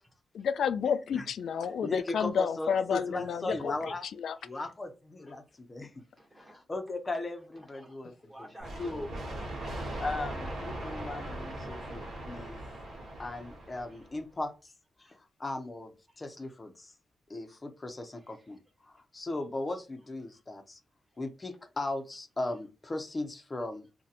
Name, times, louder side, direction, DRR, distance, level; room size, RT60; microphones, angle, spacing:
voice 1, 0.3-3.7 4.2-4.4, left 7 dB, 80° left, 0.3 m, -30 dB
voice 2, 1.8-4.1 4.4-6.0 6.4-8.5 8.8-9.1 10.0-12.6 13.2-14.7 15.0-16.9 17.3-20.8 21.2-23.9, left 2 dB, 25° left, 0.5 m, -37 dB
voice 3, 6.0-6.7 7.7-9.1 13.9-14.0 15.0-15.2 16.1-16.2 18.1-18.5 20.2-20.4, right 1 dB, 20° right, 1.2 m, -55 dB
sound 1, 8.6-14.2, right 1 dB, 65° right, 1.2 m, -39 dB
2.6 x 2.1 x 4.0 m
wide cardioid pair, 140°, 0 cm